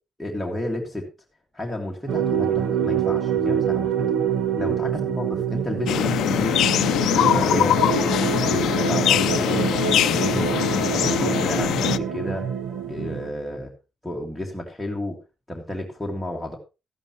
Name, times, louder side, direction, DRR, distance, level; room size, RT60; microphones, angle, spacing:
voice 1, 0.2-1.1 1.5-4.1 4.6-6.8 7.1-8.0 8.5-12.5 12.8-13.7 14.0-15.2 15.5-16.6, left 1 dB, ahead, -2 dB, 2.1 m, -31 dB
sound 1, 2.1-13.3, right 8 dB, 80° right, 1.6 m, -25 dB
sound 2, 5.9-12.0, left 12 dB, 80° left, 0.5 m, -22 dB
13.5 x 11.0 x 3.1 m, 0.28 s
cardioid pair, 145°, 0 cm